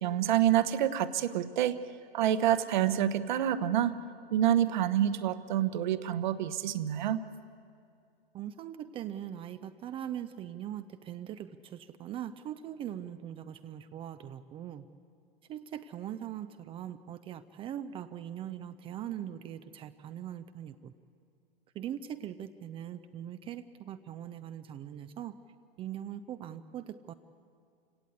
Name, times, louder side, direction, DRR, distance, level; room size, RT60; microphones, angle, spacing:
voice 1, 0.0-1.8 2.1-3.9 4.3-7.2, right 11 dB, 50° right, 13 dB, 1.1 m, -27 dB
voice 2, 8.3-14.8 15.5-20.7 21.8-25.3 25.8-27.1, right 10 dB, 20° right, 11 dB, 0.5 m, -41 dB
28.5 x 17.5 x 8.3 m, 2.3 s
figure-of-eight pair, 105°, 30 cm